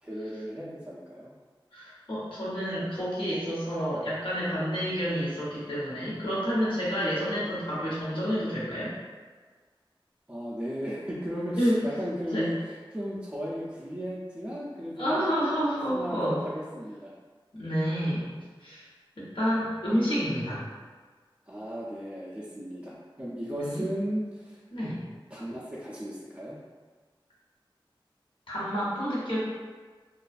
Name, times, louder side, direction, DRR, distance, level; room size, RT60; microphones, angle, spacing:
voice 1, 0.0-1.3 10.3-15.6 15.9-17.1 21.5-24.6 25.3-26.6, equal, 15° right, -7 dB, 0.4 m, -35 dB
voice 2, 1.7-8.9 11.6-11.8 12.3-12.5 15.0-16.4 17.5-18.3 18.6-18.9 19.2-20.6 23.5-23.9 24.7-25.0 28.5-29.4, equal, 65° left, -8 dB, 0.9 m, -29 dB
2.4 x 2.3 x 2.4 m, 1.4 s
wide cardioid pair, 45°, 9 cm